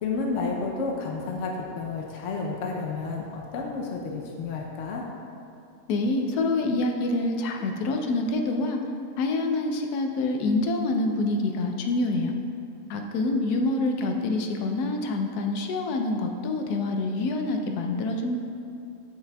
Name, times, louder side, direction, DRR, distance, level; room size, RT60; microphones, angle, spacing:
voice 1, 0.0-5.0, left 4 dB, 60° left, -1 dB, 0.8 m, -31 dB
voice 2, 5.9-8.8 9.2-12.3 12.9-18.4, left 2 dB, 80° left, 3 dB, 1.2 m, -26 dB
8.1 x 6.9 x 2.3 m, 2.6 s
omnidirectional pair, 1.7 m